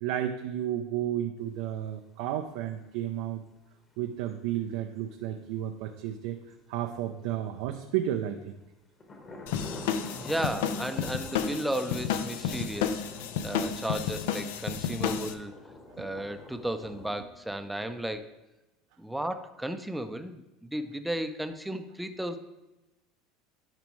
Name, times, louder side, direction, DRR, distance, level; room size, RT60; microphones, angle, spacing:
voice 1, 0.0-3.4 4.0-6.4 6.7-8.5 13.6-13.8 14.9-15.0 16.0-16.1, right 11 dB, 75° right, 5 dB, 0.5 m, -32 dB
sound 1, 4.3-4.6 6.1-6.2 6.5-6.6 7.6-8.0 9.0-17.1, left 2 dB, 30° left, 1.2 m, -46 dB
sound 2, 9.5-15.3, left 8 dB, 80° left, 0.5 m, -32 dB
voice 2, 10.2-13.0 13.4-15.5 16.0-18.3 19.0-22.4, right 1 dB, 5° right, 8 dB, 0.5 m, -34 dB
10.5 x 5.1 x 3.1 m, 0.99 s
supercardioid pair, 120°, 0 cm